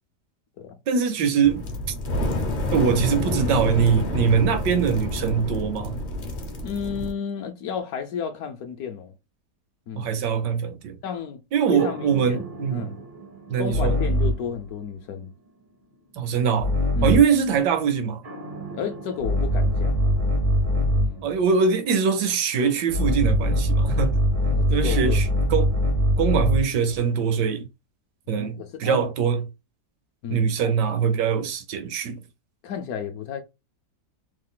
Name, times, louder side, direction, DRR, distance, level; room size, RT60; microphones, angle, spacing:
voice 1, 0.9-1.6 2.7-6.0 9.9-11.0 11.5-12.9 13.5-14.0 16.2-16.7 17.0-18.3 21.2-24.2 24.7-25.7 26.2-27.7 28.3-29.4 30.3-32.2, right 6 dB, 80° right, 1.2 m, -22 dB
sound 1, 1.4-7.1, left 1 dB, 55° left, 0.5 m, -28 dB
voice 2, 6.6-9.1 9.9-10.2 11.0-11.4 11.7-12.4 12.7-13.0 13.6-15.3 16.9-17.2 18.7-20.2 20.9-21.3 24.5-25.3 28.3-29.1 30.2-30.5 32.6-33.4, left 7 dB, 70° left, 1.0 m, -32 dB
sound 2, 11.8-14.5 16.6-17.4 18.2-21.2 22.9-26.8, equal, 55° right, 0.5 m, -23 dB
3.3 x 2.4 x 3.7 m
omnidirectional pair, 1.9 m